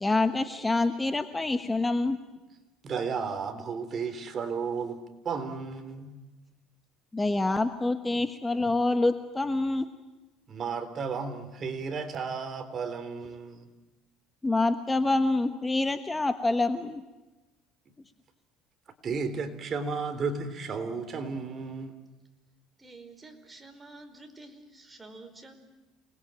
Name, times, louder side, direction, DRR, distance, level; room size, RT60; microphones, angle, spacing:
voice 1, 0.0-2.2 7.1-9.9 14.4-17.0, left 2 dB, 15° left, 9 dB, 1.2 m, -26 dB
voice 2, 2.8-6.1 10.5-13.7 17.9-18.0 19.0-21.9, right 5 dB, 35° right, 9 dB, 3.6 m, -33 dB
voice 3, 22.8-25.6, right 2 dB, 15° right, 6 dB, 4.6 m, -49 dB
28.5 x 21.0 x 9.1 m, 1.1 s
cardioid pair, 125°, 0 cm